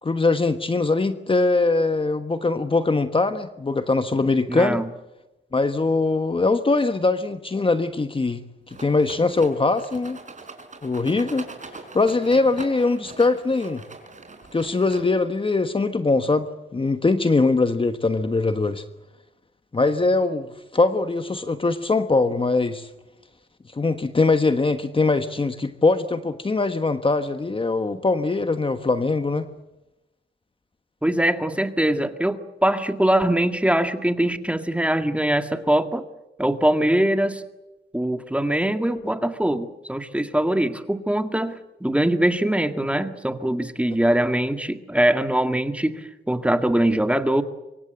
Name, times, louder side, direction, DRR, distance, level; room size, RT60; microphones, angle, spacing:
voice 1, 0.0-4.8 5.5-10.2 10.8-11.5 11.9-13.8 14.5-18.8 19.7-22.9 23.7-29.5, left 3 dB, 25° left, 9 dB, 1.3 m, -22 dB
voice 2, 4.5-4.9 31.0-36.0 36.4-37.4 37.9-47.4, right 1 dB, 5° right, 8 dB, 1.9 m, -22 dB
Rattle, 8.7-15.4, right 3 dB, 40° right, 4.9 m, -42 dB
24.5 x 24.5 x 7.9 m, 1.0 s
cardioid pair, 90°, 19 cm